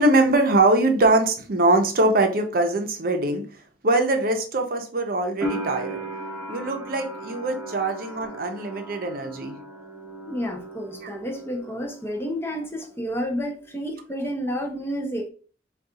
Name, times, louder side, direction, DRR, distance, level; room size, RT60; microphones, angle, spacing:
voice 1, 0.0-3.4 3.8-6.0 6.5-9.6 11.0-11.1, right 2 dB, 55° right, 0.6 m, -22 dB
sound 1, 5.4-12.2 12.5-13.4, right 1 dB, 5° right, 1.0 m, -36 dB
voice 2, 10.3-15.3, equal, 15° left, 0.5 m, -30 dB
4.0 x 2.3 x 3.6 m
head